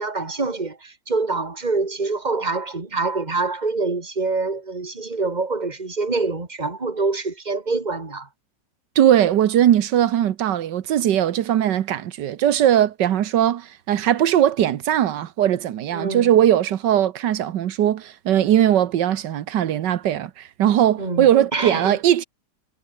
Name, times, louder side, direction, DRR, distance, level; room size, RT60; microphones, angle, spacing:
voice 1, 0.0-8.3 15.9-16.4 21.0-22.0, right 3 dB, 25° right, 2.5 m, -25 dB
voice 2, 8.9-22.2, right 11 dB, 90° right, 1.6 m, -19 dB
omnidirectional pair, 1.8 m